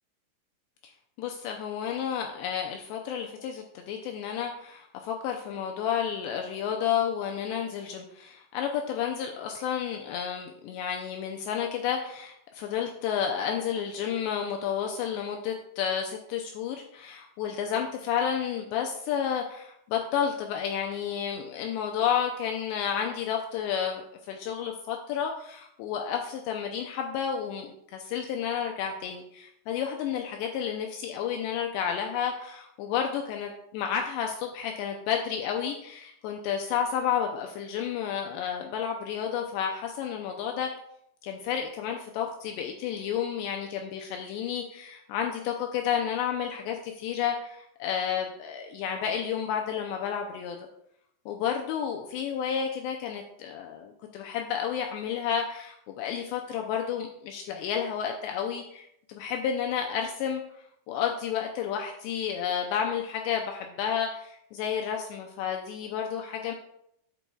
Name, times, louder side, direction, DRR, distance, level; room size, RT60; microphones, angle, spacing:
voice 1, 1.2-40.7 41.2-50.6 51.3-60.4 60.9-66.6, left 8 dB, 80° left, 2 dB, 2.7 m, -31 dB
15.0 x 5.4 x 2.3 m, 0.75 s
omnidirectional pair, 5.2 m